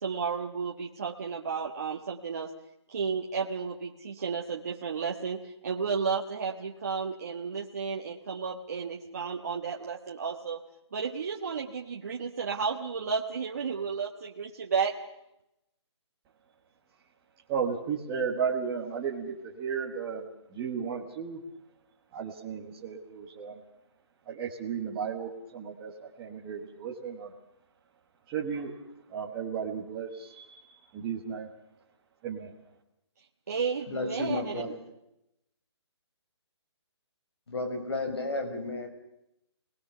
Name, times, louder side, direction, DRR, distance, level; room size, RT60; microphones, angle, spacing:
voice 1, 0.0-2.5 2.9-10.6 10.9-14.9 33.5-34.6, right 5 dB, 35° right, -1 dB, 1.5 m, -32 dB
voice 2, 17.5-21.4 22.1-23.6 24.3-27.3 28.3-28.8 29.1-31.5 32.2-32.5, right 6 dB, 10° right, -5 dB, 1.3 m, -34 dB
voice 3, 33.9-34.8 37.5-38.9, left 2 dB, 60° left, 6 dB, 6.7 m, -32 dB
28.5 x 20.0 x 6.9 m, 0.86 s
hypercardioid pair, 180°, 15 cm